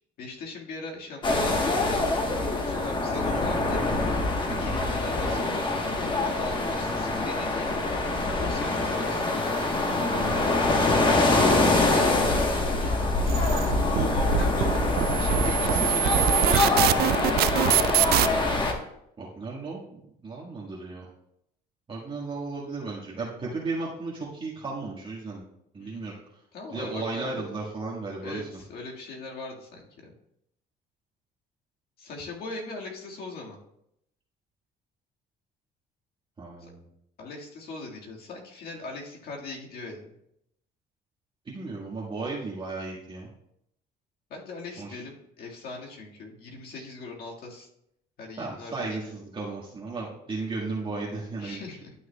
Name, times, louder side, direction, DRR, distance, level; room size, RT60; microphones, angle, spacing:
voice 1, 0.2-2.0 2.6-3.9 4.5-5.7 6.0-7.7 8.4-9.8 12.3-13.1 13.9-18.0 25.8-26.1 26.5-27.4 28.2-30.1 32.0-33.6 36.6-36.7 37.2-40.1 44.3-47.7 48.2-49.1 51.4-51.9, left 3 dB, 65° left, -1 dB, 1.8 m, -40 dB
sound 1, 1.2-18.7, left 2 dB, 30° left, 1.1 m, -25 dB
voice 2, 10.1-12.6 19.2-21.1 21.9-25.4 25.7-26.1 26.7-28.5 36.4-36.8 41.4-43.3 44.8-45.0 46.7-46.9 48.4-51.6, right 3 dB, 30° right, -5 dB, 1.6 m, -35 dB
sound 2, 13.3-18.3, right 13 dB, 65° right, 0.4 m, -24 dB
11.5 x 6.2 x 2.3 m, 0.76 s
cardioid pair, 110°, 17 cm